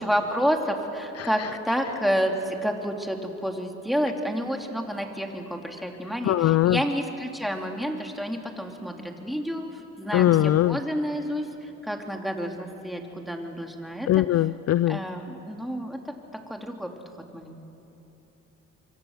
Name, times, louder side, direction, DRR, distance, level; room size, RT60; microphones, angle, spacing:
voice 1, 0.0-14.2 14.9-16.2 16.5-16.9 17.3-17.6, equal, ahead, 2 dB, 3.0 m, -29 dB
voice 2, 1.2-1.5 6.2-6.8 10.1-10.8 14.1-15.0, left 13 dB, 55° left, 17 dB, 0.5 m, -21 dB
25.5 x 24.5 x 7.4 m, 3.0 s
cardioid pair, 90°, 30 cm